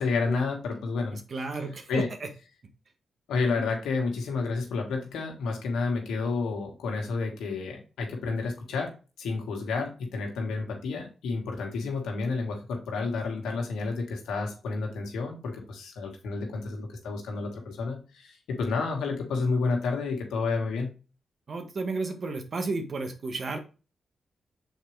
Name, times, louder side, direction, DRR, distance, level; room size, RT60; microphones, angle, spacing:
voice 1, 0.0-1.2 1.9-2.1 3.3-8.9 9.2-20.9, left 4 dB, 90° left, 1 dB, 1.8 m, -30 dB
voice 2, 1.1-2.3 3.6-3.7 21.5-23.6, right 3 dB, 60° right, 6 dB, 1.4 m, -33 dB
6.5 x 4.6 x 3.3 m, 0.33 s
cardioid pair, 55°, 0 cm